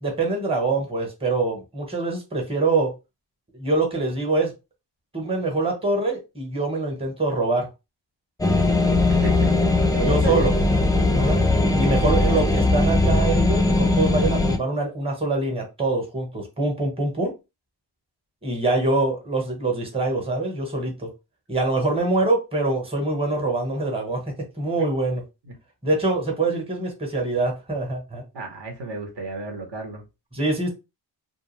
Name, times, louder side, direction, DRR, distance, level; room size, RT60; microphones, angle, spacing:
voice 1, 0.0-2.9 3.5-4.5 5.1-7.7 10.0-10.5 11.1-11.4 11.7-17.3 18.4-21.1 21.5-24.2 24.6-25.2 25.8-28.2 30.3-30.7, right 2 dB, 10° right, 2 dB, 1.0 m, -24 dB
sound 1, 8.4-14.6, left 2 dB, 10° left, 0.4 m, -19 dB
voice 2, 9.2-10.5 28.3-30.0, right 2 dB, 60° right, 3 dB, 1.1 m, -32 dB
2.4 x 2.2 x 3.1 m, 0.26 s
cardioid pair, 85°, 48 cm